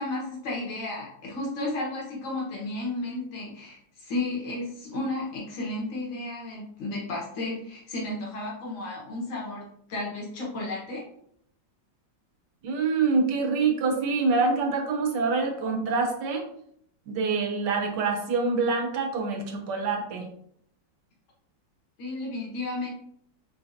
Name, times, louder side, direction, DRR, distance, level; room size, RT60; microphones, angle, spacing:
voice 1, 0.0-11.0 22.0-22.9, left 2 dB, 85° left, -4 dB, 2.1 m, -33 dB
voice 2, 12.6-16.5 17.1-20.3, right 4 dB, 70° right, 3 dB, 1.4 m, -26 dB
4.7 x 3.6 x 2.7 m, 0.67 s
omnidirectional pair, 2.0 m